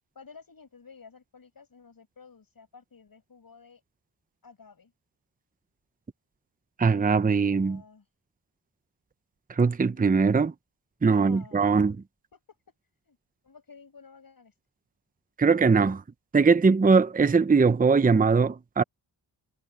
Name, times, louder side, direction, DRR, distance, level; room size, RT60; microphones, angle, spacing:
voice 1, 0.2-3.8 4.4-4.9 7.3-8.1 9.8-10.0 11.1-11.9 12.3-12.7 13.0-13.2 13.4-14.5, left 5 dB, 50° left, 7.2 m, -52 dB
voice 2, 6.8-7.8 9.6-10.5 11.0-11.9 15.4-16.0 16.3-18.8, right 4 dB, 20° right, 0.7 m, -21 dB
cardioid pair, 80°, 43 cm